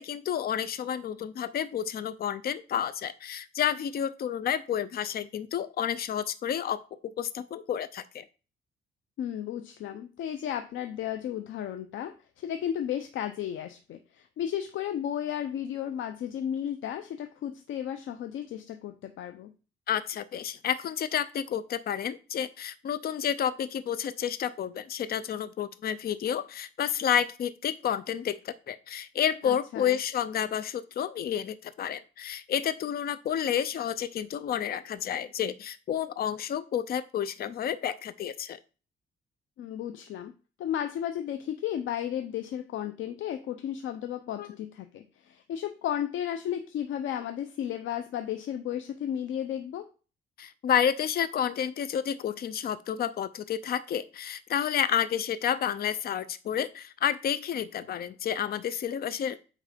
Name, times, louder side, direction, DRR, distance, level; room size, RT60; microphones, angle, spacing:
voice 1, 0.0-8.2 19.9-38.6 44.4-44.5 50.4-59.4, left 9 dB, 50° left, 14 dB, 0.6 m, -30 dB
voice 2, 9.2-19.5 29.4-30.0 39.6-40.3 40.6-49.9, left 10 dB, 85° left, 7 dB, 0.7 m, -34 dB
8.4 x 3.3 x 5.1 m, 0.34 s
cardioid pair, 135°, 20 cm